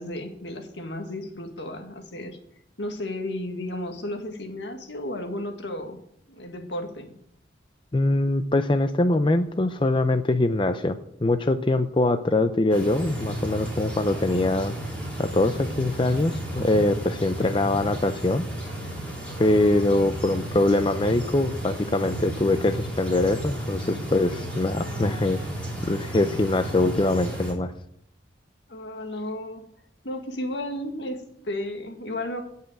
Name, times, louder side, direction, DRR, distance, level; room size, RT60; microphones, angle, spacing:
voice 1, 0.0-2.4 2.8-6.0 6.3-7.1 28.7-29.7 30.0-32.4, left 1 dB, 75° left, 5 dB, 1.8 m, -33 dB
voice 2, 7.9-14.7 15.2-18.4 19.4-25.4 25.8-27.7, left 2 dB, 30° left, 9 dB, 0.5 m, -23 dB
sound 1, 12.7-27.5, right 1 dB, 5° left, 4.2 m, -33 dB
16.5 x 5.7 x 7.7 m, 0.75 s
head